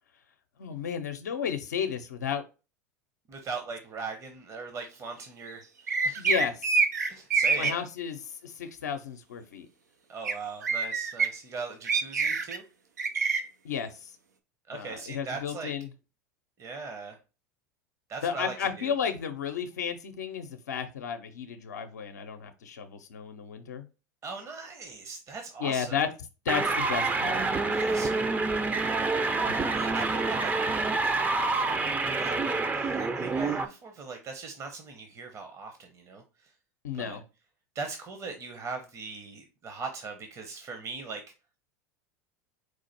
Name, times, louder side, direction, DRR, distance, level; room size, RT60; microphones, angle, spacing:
voice 1, 0.6-2.4 6.2-6.8 7.6-9.7 13.6-14.1 14.7-15.9 18.2-23.8 25.6-26.1 26.4-27.4 36.8-37.2, left 7 dB, 80° left, 7 dB, 0.5 m, -33 dB
voice 2, 3.3-6.3 7.1-7.8 10.1-12.6 14.7-15.7 16.6-17.2 18.1-18.9 24.2-26.1 27.7-28.8 29.5-30.6 31.5-36.5 36.9-37.2 37.7-41.2, right 4 dB, 35° right, 4 dB, 0.9 m, -40 dB
sound 1, 5.9-7.7 10.2-10.3 10.6-11.3 11.9-12.6 13.0-13.4, right 5 dB, 90° right, 0.6 m, -25 dB
sound 2, 26.5-33.7, right 3 dB, 20° right, 0.5 m, -27 dB
4.7 x 2.5 x 4.1 m, 0.31 s
hypercardioid pair, 85°, 9 cm